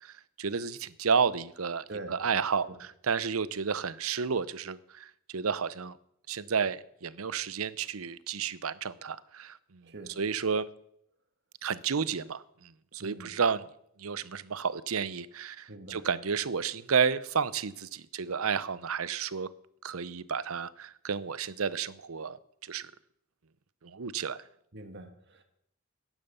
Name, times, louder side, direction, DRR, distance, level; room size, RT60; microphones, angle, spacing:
voice 1, 0.0-6.0 6.3-9.9 10.2-10.7 11.6-13.7 14.0-19.5 19.8-22.4 22.6-22.9 23.8-24.4, right 6 dB, 90° right, 17 dB, 0.7 m, -31 dB
voice 2, 1.9-2.2 2.7-2.8 9.8-10.2 13.0-13.4 15.7-16.1 24.7-25.4, right 2 dB, 55° right, 7 dB, 1.7 m, -44 dB
16.0 x 11.0 x 6.9 m, 0.72 s
head